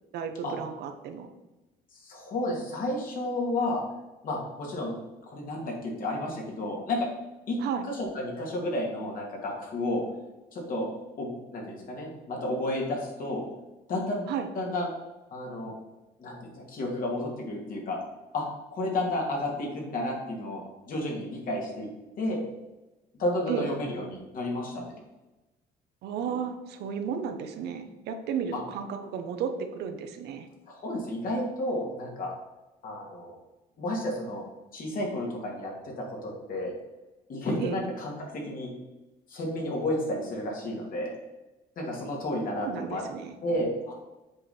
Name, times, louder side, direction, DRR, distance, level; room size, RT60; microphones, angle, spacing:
voice 1, 0.1-1.3 7.6-7.8 14.3-14.5 23.5-23.7 26.0-30.5 37.6-37.8 42.6-43.4, right 7 dB, 75° right, 7 dB, 1.0 m, -33 dB
voice 2, 2.0-3.8 4.2-4.9 5.3-7.1 7.5-10.0 10.5-10.9 11.2-13.5 13.9-14.9 15.3-15.7 16.2-18.0 18.3-18.4 18.7-20.6 20.9-21.9 22.2-22.4 23.2-24.9 28.5-28.6 30.7-32.3 32.8-33.3 33.8-34.4 34.7-36.7 37.3-38.7 39.3-41.1 41.8-43.0 43.4-43.9, left 1 dB, 55° left, -1 dB, 2.5 m, -31 dB
7.8 x 5.1 x 4.4 m, 1.1 s
cardioid pair, 110°, 17 cm